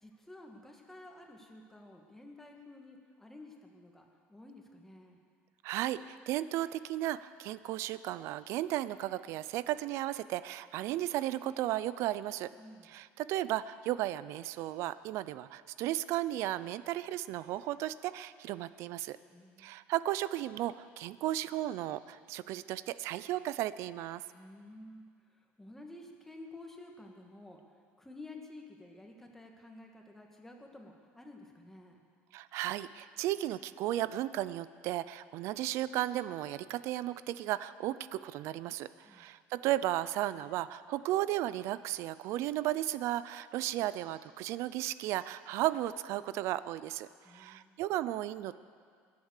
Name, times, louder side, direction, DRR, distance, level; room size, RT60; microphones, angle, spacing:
voice 1, 0.0-5.2 12.6-12.9 19.3-19.7 24.3-25.1 25.3-27.6 28.0-32.0 39.0-39.3 47.2-47.7, left 2 dB, 5° left, 1 dB, 2.0 m, -52 dB
voice 2, 5.6-12.5 12.8-19.2 19.6-24.2 32.3-48.5, right 14 dB, 65° right, 15 dB, 0.5 m, -34 dB
22.5 x 8.1 x 6.6 m, 2.1 s
cardioid pair, 125°, 5 cm